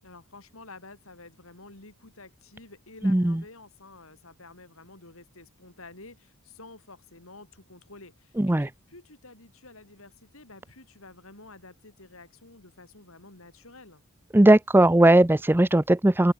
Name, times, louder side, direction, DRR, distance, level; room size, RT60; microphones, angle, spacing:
voice 1, 0.0-14.0, left 2 dB, 65° left, 4.8 m, -50 dB
voice 2, 3.0-3.4 8.4-8.7 14.3-16.3, right 1 dB, 10° right, 0.5 m, -18 dB
open air
head